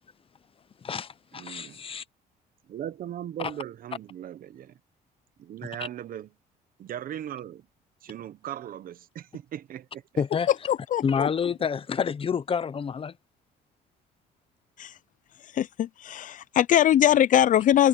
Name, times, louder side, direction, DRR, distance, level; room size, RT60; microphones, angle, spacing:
voice 1, 0.8-2.0 10.2-10.5 11.0-13.2, left 6 dB, 35° left, 0.9 m, -28 dB
voice 2, 1.4-1.8 2.7-4.7 5.4-6.3 6.8-7.7 8.0-10.2, right 11 dB, 55° right, 1.2 m, -38 dB
voice 3, 10.7-11.3 14.8-14.9 15.5-17.9, left 11 dB, 50° left, 0.6 m, -22 dB
cardioid pair, 110°, 17 cm